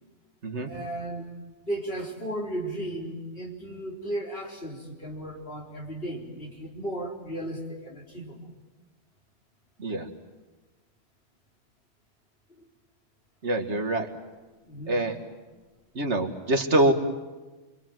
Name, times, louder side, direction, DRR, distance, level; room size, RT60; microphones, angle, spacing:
voice 1, 0.7-1.3 1.6-8.4 12.6-12.7 14.6-15.1, right 1 dB, 55° left, -1 dB, 4.3 m, -35 dB
voice 2, 13.4-14.1 14.9-15.2 16.0-16.9, right 1 dB, 70° right, 5 dB, 2.1 m, -25 dB
28.5 x 23.5 x 7.7 m, 1.2 s
omnidirectional pair, 1.2 m